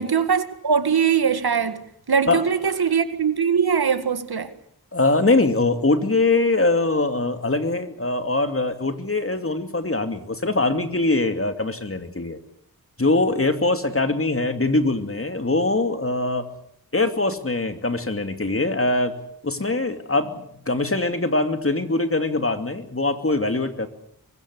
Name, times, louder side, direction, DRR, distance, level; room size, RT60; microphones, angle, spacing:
voice 1, 0.0-4.5, right 6 dB, 80° right, 2.0 m, -21 dB
voice 2, 4.9-12.4 13.0-16.5 16.9-19.2 19.4-23.9, left 2 dB, 35° left, 2.6 m, -22 dB
25.0 x 22.0 x 8.3 m
wide cardioid pair, 65°, 38 cm